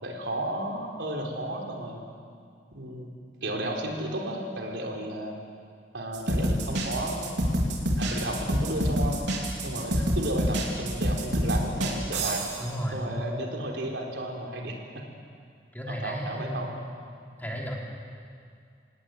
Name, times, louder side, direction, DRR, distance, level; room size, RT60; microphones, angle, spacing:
voice 1, 0.0-2.0 2.7-3.1 3.4-5.4 5.9-7.4 8.0-9.2 9.6-12.4 12.9-15.0 15.9-16.7, right 1 dB, 90° right, 1 dB, 4.1 m, -33 dB
sound 1, 6.1-12.6, equal, 75° right, 4.4 m, -27 dB
voice 2, 12.6-13.3 15.7-16.7 17.4-17.7, equal, 10° left, -2 dB, 4.0 m, -33 dB
27.0 x 18.0 x 9.4 m, 2.3 s
head